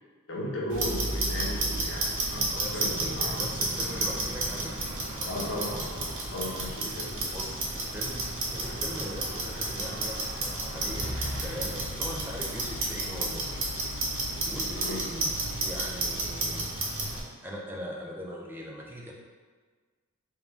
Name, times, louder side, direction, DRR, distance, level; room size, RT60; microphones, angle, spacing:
voice 1, 0.3-3.4 5.2-7.3 14.8-15.0, left 1 dB, 60° left, -4 dB, 0.8 m, -35 dB
Clock, 0.7-17.2, right 2 dB, 60° right, 0.8 m, -32 dB
voice 2, 2.5-5.5 7.2-13.6 14.4-16.7 17.4-19.1, equal, 10° right, -2 dB, 0.4 m, -41 dB
sound 1, 10.8-16.4, left 4 dB, 85° left, 0.3 m, -44 dB
3.7 x 2.4 x 3.5 m, 1.5 s
head